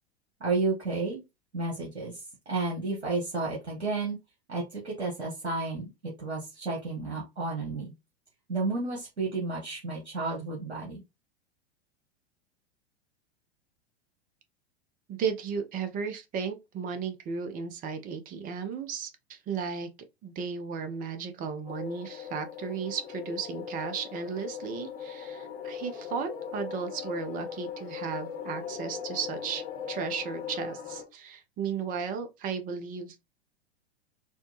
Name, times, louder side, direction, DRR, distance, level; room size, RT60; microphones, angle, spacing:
voice 1, 0.4-1.2 1.5-2.2 2.5-4.2 4.5-7.9 8.5-11.0, right 3 dB, 75° right, 1.4 m, -32 dB
voice 2, 15.1-19.9 20.2-33.2, right 6 dB, 25° right, 0.7 m, -35 dB
sound 1, 21.7-31.0, left 7 dB, 65° left, 1.2 m, -39 dB
4.3 x 2.3 x 3.0 m
figure-of-eight pair, 95°, 33 cm